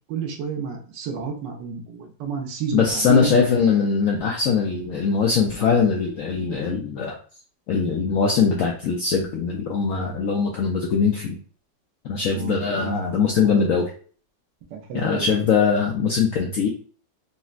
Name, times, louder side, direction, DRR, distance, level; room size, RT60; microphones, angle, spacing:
voice 1, 0.1-3.3 12.3-13.1 13.4-13.7 14.7-15.3, right 6 dB, 80° right, 3 dB, 1.3 m, -30 dB
voice 2, 2.7-7.1 7.7-11.4 12.0-13.9 14.9-16.7, left 5 dB, 75° left, 0 dB, 0.7 m, -21 dB
4.1 x 2.0 x 2.3 m, 0.42 s
omnidirectional pair, 1.9 m